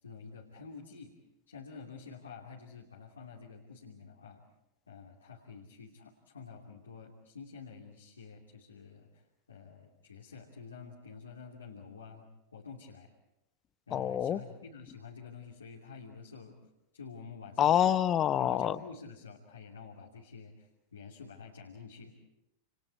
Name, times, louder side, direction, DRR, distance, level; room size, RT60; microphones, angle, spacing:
voice 1, 0.0-1.1 1.5-4.4 4.9-13.1 13.9-16.6 16.9-17.9 18.4-22.1, left 5 dB, 75° left, -1 dB, 2.8 m, -49 dB
voice 2, 13.9-14.4 17.6-18.8, left 10 dB, 30° left, 15 dB, 0.9 m, -26 dB
29.0 x 29.0 x 4.6 m, 0.89 s
figure-of-eight pair, 90°, 0 cm